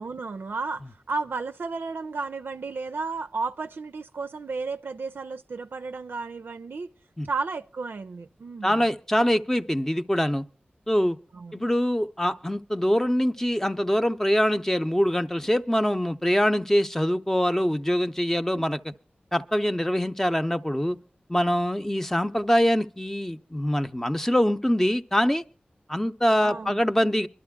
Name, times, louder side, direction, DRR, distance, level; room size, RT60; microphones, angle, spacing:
voice 1, 0.0-6.9 7.2-8.8 11.3-11.6 18.5-18.7 26.4-26.8, right 4 dB, 90° right, 0.5 m, -33 dB
voice 2, 8.6-10.4 10.9-11.2 11.5-18.8 19.3-21.0 21.3-25.4 25.9-27.3, equal, 10° left, 0.7 m, -24 dB
25.0 x 12.5 x 2.3 m
wide cardioid pair, 65°, 3 cm